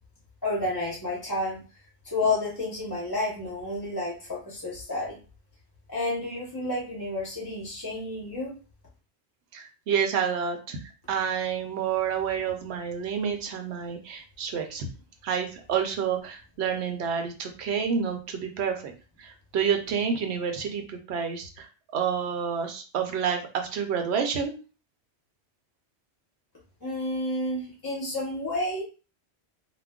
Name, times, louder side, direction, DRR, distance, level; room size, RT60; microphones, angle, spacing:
voice 1, 0.4-1.6 2.0-5.2 5.9-8.5 26.8-28.8, left 2 dB, 25° left, -3 dB, 0.6 m, -30 dB
voice 2, 9.5-10.8 11.1-14.9 15.2-18.9 19.2-24.5, right 7 dB, 75° right, 5 dB, 0.9 m, -29 dB
2.3 x 2.1 x 3.5 m, 0.34 s
omnidirectional pair, 1.1 m